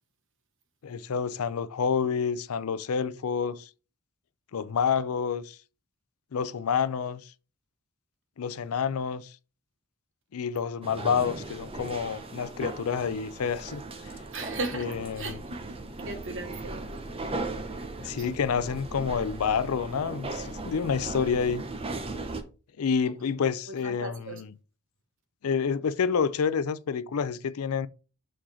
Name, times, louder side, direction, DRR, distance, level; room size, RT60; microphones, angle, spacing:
voice 1, 0.8-3.7 4.5-5.6 6.3-7.2 8.4-9.3 10.3-13.8 14.7-15.4 18.0-21.6 22.8-24.5 25.4-27.9, left 6 dB, 75° left, 0.5 m, -28 dB
sound 1, 10.8-22.4, right 2 dB, 25° right, 0.7 m, -37 dB
voice 2, 14.3-16.9 17.8-18.3 23.7-24.4, right 2 dB, 60° right, 1.2 m, -38 dB
6.4 x 3.8 x 4.3 m
head